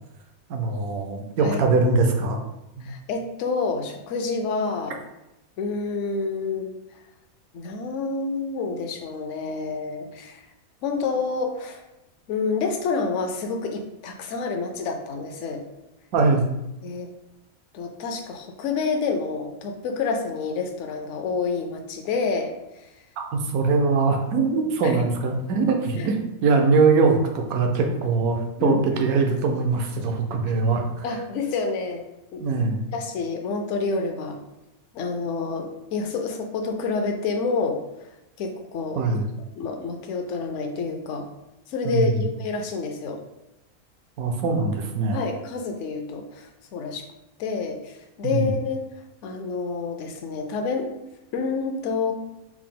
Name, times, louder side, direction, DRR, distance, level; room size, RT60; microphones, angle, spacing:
voice 1, 0.5-2.4 2.8-2.9 16.1-16.4 23.2-31.0 32.4-32.8 39.0-39.3 41.8-42.3 44.2-45.2 48.2-48.5, right 4 dB, 80° right, 3 dB, 1.1 m, -22 dB
voice 2, 2.8-5.0 5.6-6.7 7.5-10.4 10.8-11.8 12.3-15.6 16.8-17.1 17.7-22.5 24.8-25.0 26.0-26.1 28.6-29.1 31.0-32.0 32.3-32.4 32.9-34.4 34.9-37.8 38.4-39.0 39.6-41.3 41.7-43.2 45.1-47.0 47.4-48.9 49.2-50.9 51.3-52.1, left 4 dB, 65° left, 4 dB, 0.8 m, -28 dB
4.7 x 2.0 x 3.6 m, 0.93 s
omnidirectional pair, 1.5 m